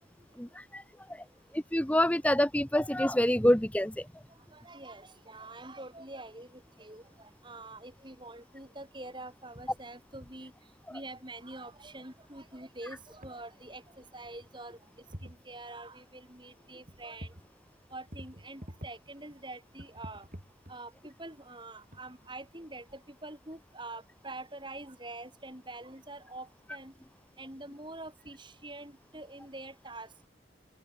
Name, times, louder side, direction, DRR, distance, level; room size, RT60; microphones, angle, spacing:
voice 1, 0.4-0.8 1.1-1.2 1.5-4.1, left 1 dB, 10° left, 1.2 m, -27 dB
voice 2, 4.3-10.5 10.9-14.8 15.2-17.4 17.9-20.3 20.7-26.9 27.4-30.1, right 2 dB, 25° right, 6.6 m, -45 dB
sound 1, 12.9-13.3 13.9-14.0 14.2-14.8 15.1-15.5 16.9-17.5 17.8-19.1 19.7-21.1 21.8-22.7, equal, 45° right, 7.7 m, -47 dB
open air
head